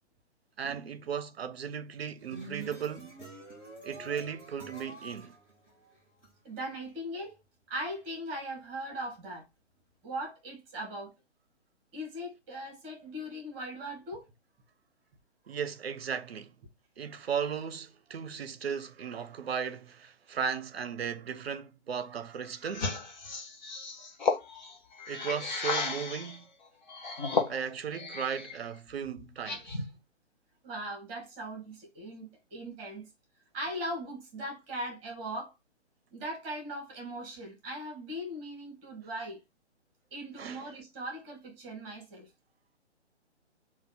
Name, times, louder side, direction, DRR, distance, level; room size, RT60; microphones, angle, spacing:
voice 1, 0.6-3.1 3.8-5.4 15.5-16.6 17.0-23.0 25.1-26.5 27.5-29.8 40.4-40.7, right 7 dB, 60° right, 0.6 m, -36 dB
sound 1, 2.0-6.3, right 3 dB, 5° left, 0.6 m, -47 dB
voice 2, 6.4-7.4 7.7-9.5 10.0-11.1 11.9-14.3 30.6-33.1 33.5-35.5 36.1-39.4 40.1-42.3, right 1 dB, 15° right, 1.4 m, -39 dB
sound 2, 22.7-26.4 26.9-28.6 28.9-30.0, left 4 dB, 40° left, 0.9 m, -34 dB
3.4 x 2.5 x 3.9 m
figure-of-eight pair, 135°, 35 cm